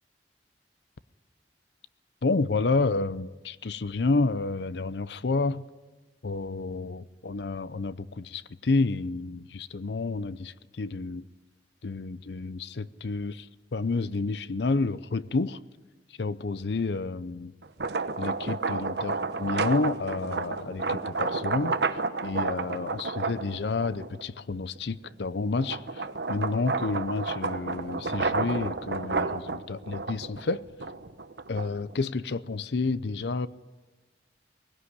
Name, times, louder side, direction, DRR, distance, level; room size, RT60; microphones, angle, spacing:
voice 1, 2.2-5.6 6.2-11.3 11.8-15.6 16.2-17.5 18.2-30.6 31.5-33.5, left 3 dB, 70° left, 0.6 m, -30 dB
sound 1, 17.6-24.2 24.8-31.9, right 4 dB, 70° right, 1.0 m, -31 dB
20.5 x 16.5 x 9.8 m
head